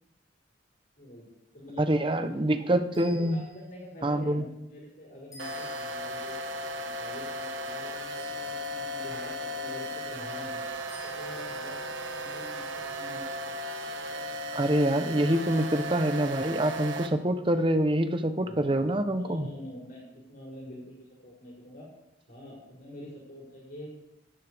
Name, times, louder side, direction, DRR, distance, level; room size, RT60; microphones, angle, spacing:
voice 1, 1.0-1.3 1.5-2.5 3.2-6.4 6.7-10.6 11.0-13.3 18.3-21.9 22.3-23.9, left 1 dB, 45° left, -5 dB, 6.7 m, -45 dB
voice 2, 1.8-3.4 4.0-4.4 14.5-19.5, right 1 dB, 25° right, 9 dB, 0.8 m, -26 dB
sound 1, 2.9-3.8 5.3-6.2 8.1-8.9 10.9-11.6, left 3 dB, 20° left, 6.3 m, -53 dB
sound 2, 5.4-17.1, equal, 75° right, 1.4 m, -36 dB
18.5 x 13.0 x 3.5 m, 0.87 s
head